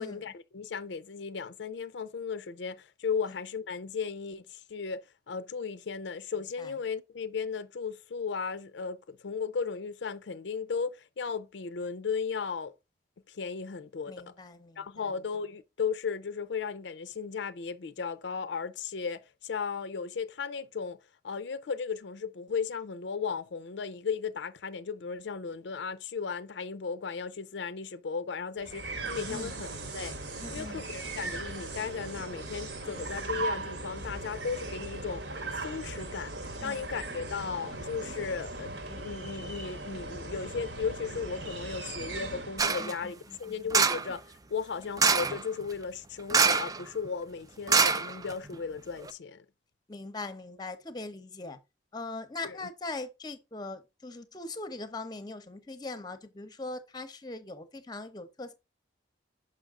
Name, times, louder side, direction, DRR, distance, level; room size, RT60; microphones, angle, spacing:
voice 1, 0.0-12.7 13.3-14.2 14.8-21.0 21.2-30.2 30.5-35.2 35.5-36.3 36.6-49.4 52.4-52.6, left 5 dB, 75° left, 0.5 m, -36 dB
voice 2, 14.1-15.1 29.3-29.5 30.4-30.8 36.6-36.8 42.8-43.7 49.9-51.6 51.9-58.5, left 2 dB, 20° left, 0.7 m, -41 dB
sound 1, 28.6-42.8, right 2 dB, 70° right, 1.3 m, -38 dB
sound 2, 42.6-42.9 43.7-44.1 45.0-45.4 46.3-46.8 47.1-47.2 47.7-48.5 49.0-49.1, right 5 dB, 20° right, 0.4 m, -24 dB
6.4 x 5.4 x 3.6 m
head